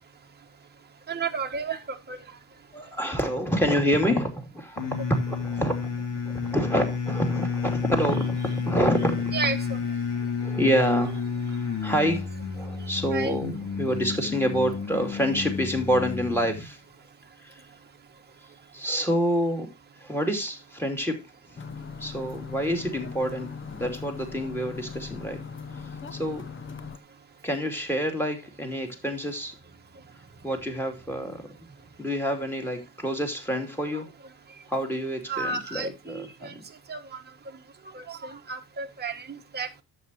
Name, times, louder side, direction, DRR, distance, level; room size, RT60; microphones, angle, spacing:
voice 1, 1.1-2.2 9.3-9.8 13.1-13.4 35.3-36.6 36.9-37.2 37.9-39.7, right 4 dB, 25° right, 1.3 m, -32 dB
voice 2, 2.7-5.9 6.2-9.3 10.4-11.2 11.5-12.3 12.5-16.8 17.4-17.5 18.7-19.7 20.0-21.2 22.0-25.4 26.1-26.4 27.4-29.5 30.4-31.4 32.0-34.1 34.7-36.6, equal, 5° left, 2.8 m, -27 dB
sound 1, 4.8-16.7, left 6 dB, 50° left, 3.0 m, -31 dB
sound 2, 21.6-27.0, left 5 dB, 30° left, 0.9 m, -39 dB
11.5 x 8.1 x 3.0 m
cardioid pair, 105°, 41 cm